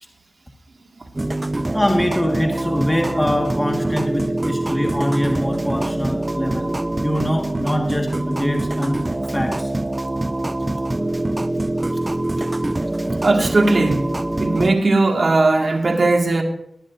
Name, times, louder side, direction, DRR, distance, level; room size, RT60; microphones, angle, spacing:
sound 1, 1.2-14.8, right 1 dB, 30° right, 0.3 m, -24 dB
voice 1, 1.7-6.7 7.0-9.0 9.3-9.7 12.4-12.5, equal, 10° left, 1.6 m, -23 dB
voice 2, 13.2-14.1 14.4-16.4, right 2 dB, 65° right, 1.9 m, -18 dB
20.5 x 9.9 x 2.6 m
cardioid pair, 45°, 0 cm